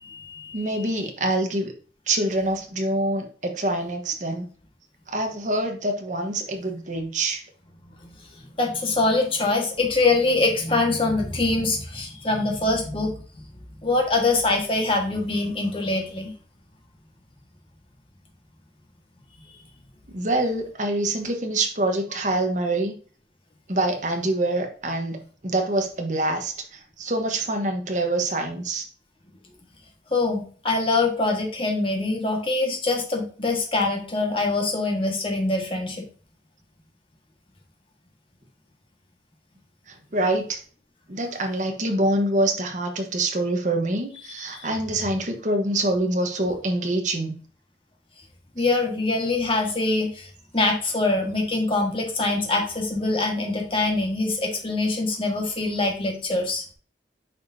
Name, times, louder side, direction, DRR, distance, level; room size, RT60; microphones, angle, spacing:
voice 1, 0.0-0.9 8.4-13.1 13.8-16.3 30.1-36.0 44.5-44.7 48.5-50.3 50.5-56.6, left 2 dB, 30° left, 1 dB, 1.6 m, -24 dB
voice 2, 0.5-1.7 2.1-4.4 5.1-7.4 20.1-22.9 23.7-25.2 25.4-28.9 40.1-40.6 41.1-47.3, right 2 dB, 45° right, 4 dB, 1.2 m, -25 dB
9.1 x 5.1 x 2.8 m, 0.41 s
head